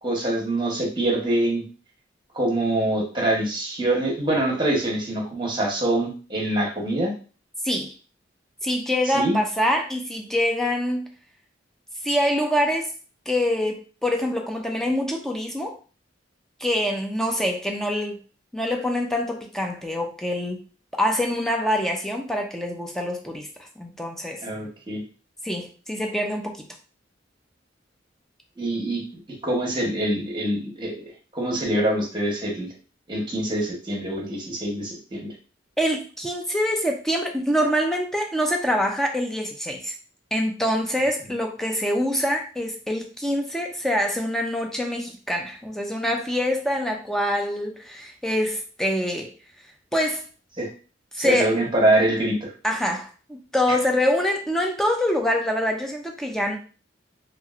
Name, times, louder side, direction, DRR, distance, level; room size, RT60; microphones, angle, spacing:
voice 1, 0.0-1.6 2.3-7.1 9.1-9.4 24.4-25.0 28.6-29.0 29.4-32.7 33.1-35.3 50.6-50.7 51.2-52.5, right 1 dB, 25° right, 0 dB, 0.9 m, -24 dB
voice 2, 8.6-11.1 12.0-12.9 13.3-15.8 16.6-18.2 18.5-20.6 20.9-23.5 23.8-24.4 25.4-26.6 35.8-39.9 40.3-49.3 49.9-50.3 51.1-51.5 52.6-56.6, equal, ahead, 2 dB, 0.3 m, -25 dB
2.9 x 2.4 x 2.4 m, 0.36 s
head